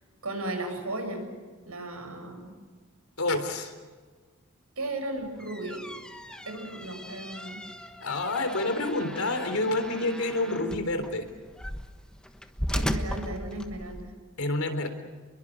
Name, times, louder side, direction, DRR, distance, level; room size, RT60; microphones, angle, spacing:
voice 1, 0.2-1.3 1.7-2.5 4.8-5.8 6.5-7.6 12.7-14.1, right 2 dB, 85° right, 4 dB, 7.0 m, -35 dB
voice 2, 3.2-3.7 8.0-11.3 14.4-14.9, left 2 dB, 80° left, 7 dB, 3.8 m, -28 dB
sound 1, 5.2-14.1, equal, 5° left, 1.3 m, -37 dB
30.0 x 22.5 x 6.4 m, 1.5 s
head